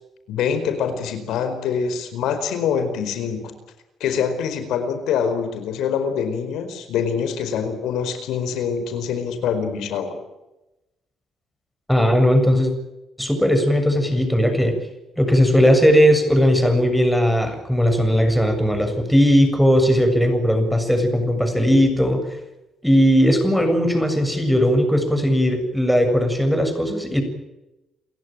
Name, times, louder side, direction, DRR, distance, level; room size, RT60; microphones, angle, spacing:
voice 1, 0.3-3.5 4.0-10.1, left 7 dB, 85° left, 9 dB, 4.7 m, -24 dB
voice 2, 11.9-12.7 13.2-14.8 15.2-22.2 22.8-27.2, equal, ahead, 6 dB, 7.2 m, -18 dB
29.5 x 16.0 x 9.1 m, 0.98 s
cardioid pair, 90°, 0 cm